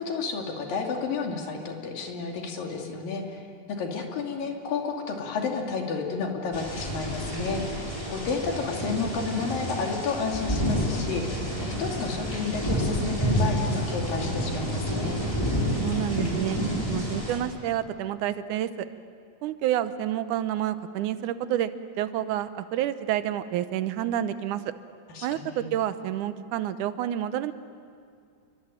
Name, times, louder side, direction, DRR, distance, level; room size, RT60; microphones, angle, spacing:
voice 1, 0.0-3.4 3.7-15.2 25.1-25.7, left 4 dB, 90° left, 1 dB, 4.3 m, -31 dB
sound 1, 6.5-17.4, equal, 5° left, 4.7 m, -29 dB
voice 2, 15.8-16.6 16.9-18.9 19.4-21.7 22.0-24.7 25.2-27.5, right 11 dB, 75° right, 11 dB, 2.3 m, -29 dB
28.0 x 24.0 x 9.0 m, 2.2 s
omnidirectional pair, 3.9 m